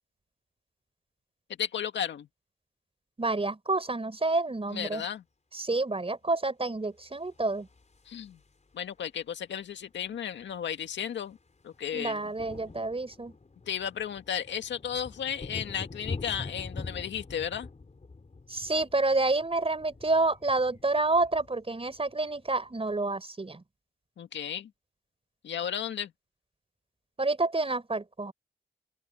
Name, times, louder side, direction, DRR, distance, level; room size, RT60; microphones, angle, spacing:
voice 1, 1.6-2.3 4.7-5.2 8.1-8.4 8.7-11.4 11.6-12.2 13.7-17.7 24.2-24.7 25.4-26.1, left 9 dB, 80° left, 2.0 m, -34 dB
voice 2, 3.2-5.0 5.5-7.7 11.9-13.3 18.5-23.6 27.2-28.3, right 2 dB, 30° right, 4.9 m, -28 dB
sound 1, 7.2-8.7 10.1-10.2 10.3-10.6 10.9-22.9, left 3 dB, 40° left, 5.0 m, -44 dB
open air
supercardioid pair, 50°, 19 cm